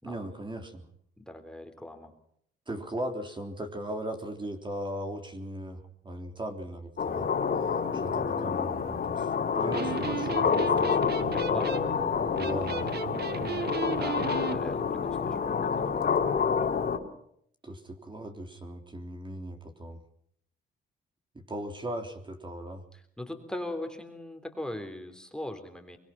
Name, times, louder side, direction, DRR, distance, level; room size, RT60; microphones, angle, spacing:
voice 1, 0.0-0.8 2.7-7.3 7.9-10.9 12.4-12.9 17.6-20.0 21.4-22.8, right 1 dB, 25° right, 4 dB, 3.5 m, -38 dB
voice 2, 1.2-2.1 11.3-11.9 13.4-15.9 22.9-26.0, left 1 dB, 5° left, 5 dB, 3.7 m, -40 dB
sound 1, 7.0-17.0, left 6 dB, 50° left, 3.6 m, -28 dB
Electric guitar, 9.6-14.6, right 8 dB, 55° right, 1.7 m, -36 dB
24.0 x 22.5 x 5.9 m, 0.69 s
cardioid pair, 90°, 20 cm